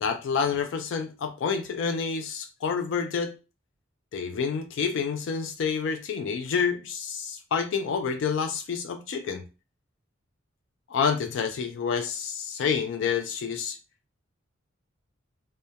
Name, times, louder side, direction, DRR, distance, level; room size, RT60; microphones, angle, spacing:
voice 1, 0.0-3.3 4.1-9.4 10.9-13.8, left 6 dB, 65° left, 0.3 m, -28 dB
2.2 x 2.1 x 2.7 m
head